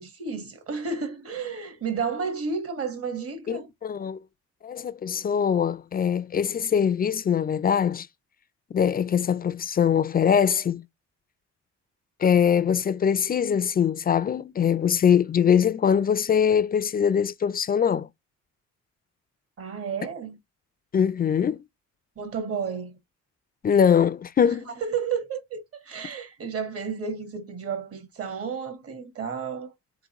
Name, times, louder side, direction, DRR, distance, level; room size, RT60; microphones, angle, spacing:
voice 1, 0.0-3.7 19.6-20.4 22.2-22.9 24.8-29.7, right 5 dB, 50° right, 1.5 m, -32 dB
voice 2, 3.5-4.2 4.6-8.1 8.7-10.8 12.2-18.1 20.9-21.6 23.6-24.7, left 8 dB, 30° left, 0.3 m, -22 dB
3.7 x 3.7 x 2.9 m
cardioid pair, 90°, 30 cm